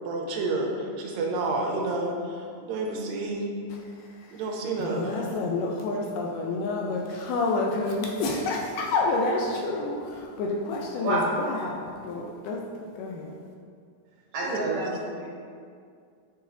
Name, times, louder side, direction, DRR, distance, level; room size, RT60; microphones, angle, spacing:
voice 1, 0.0-3.5 4.3-5.4 8.2-8.3 9.0-9.1 14.4-15.0, right 2 dB, 90° right, 1 dB, 2.4 m, -30 dB
voice 2, 4.8-11.8 12.0-12.6 13.0-13.3, left 3 dB, 80° left, 0 dB, 2.0 m, -28 dB
voice 3, 14.3-15.3, right 2 dB, 70° right, -5 dB, 1.8 m, -29 dB
7.9 x 4.8 x 2.7 m, 2.3 s
omnidirectional pair, 4.0 m